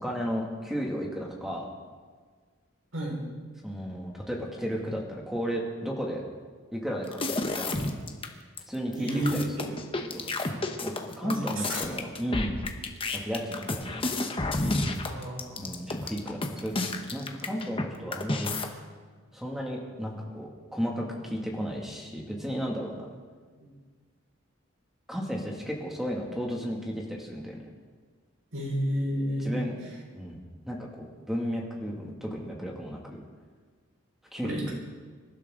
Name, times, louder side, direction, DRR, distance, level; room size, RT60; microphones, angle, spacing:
voice 1, 0.0-1.7 3.6-6.2 6.7-7.8 8.7-9.8 10.1-10.3 10.8-12.6 13.1-14.2 15.6-18.5 19.3-23.1 25.1-27.6 29.4-29.8 30.1-33.2 34.3-34.7, equal, ahead, -2 dB, 2.4 m, -34 dB
sound 1, 7.1-8.3 8.6-8.7 8.9-17.9 18.1-18.7, left 2 dB, 25° left, 1.1 m, -30 dB
voice 2, 9.0-9.4 11.2-11.8 15.1-15.8 23.6-23.7 28.5-29.5 34.4-34.7, right 1 dB, 75° right, -3 dB, 5.2 m, -31 dB
25.5 x 12.0 x 3.9 m, 1.5 s
head